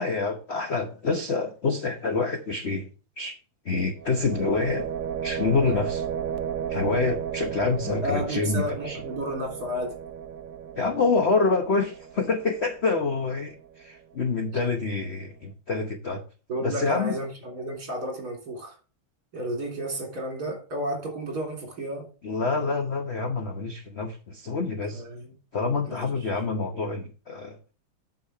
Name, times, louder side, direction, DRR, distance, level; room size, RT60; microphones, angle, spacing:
voice 1, 0.0-2.9 3.2-3.4 3.6-4.9 5.2-6.0 6.7-9.0 10.7-16.2 16.6-17.2 22.2-25.0 25.5-27.6, left 4 dB, 45° left, 0.9 m, -27 dB
sound 1, 4.0-13.8, right 8 dB, 75° right, 0.8 m, -34 dB
voice 2, 7.8-10.0 16.5-18.8 19.3-22.1 24.9-25.3 25.8-26.3, right 1 dB, 45° right, 4.1 m, -32 dB
8.7 x 6.7 x 4.5 m
omnidirectional pair, 2.3 m